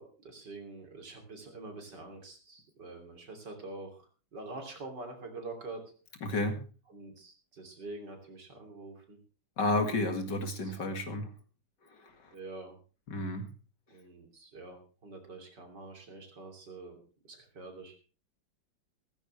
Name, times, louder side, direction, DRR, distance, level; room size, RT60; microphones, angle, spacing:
voice 1, 0.0-5.8 6.9-9.2 10.6-10.7 12.3-12.8 13.9-17.0 17.2-18.0, right 2 dB, 65° right, 4 dB, 3.7 m, -46 dB
voice 2, 6.2-6.6 9.6-11.3 12.0-12.3 13.1-13.5, left 2 dB, 65° left, 6 dB, 2.7 m, -31 dB
15.5 x 14.0 x 3.3 m, 0.36 s
omnidirectional pair, 2.0 m